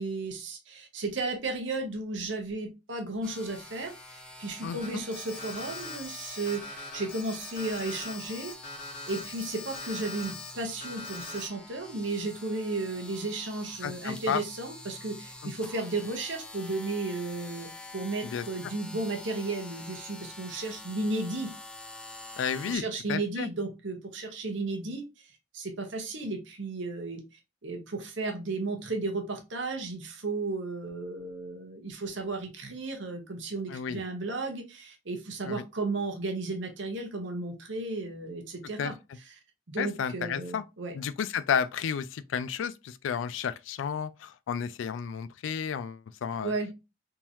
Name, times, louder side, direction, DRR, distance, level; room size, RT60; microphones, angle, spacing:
voice 1, 0.0-8.5 9.1-21.5 22.7-25.0 25.5-27.2 27.6-38.9 39.7-40.9 46.4-46.7, right 2 dB, 80° right, 0.9 m, -34 dB
sound 1, 3.2-22.8, left 2 dB, 5° left, 0.3 m, -47 dB
voice 2, 4.6-5.0 13.8-14.4 15.4-15.5 18.2-18.4 22.4-22.8 23.1-23.5 33.7-34.0 35.4-35.6 38.8-38.9 39.8-40.6 40.9-46.5, left 7 dB, 85° left, 0.3 m, -32 dB
Alarm, 4.8-10.5 10.8-11.5, left 3 dB, 45° left, 1.5 m, -41 dB
3.7 x 2.9 x 2.6 m
head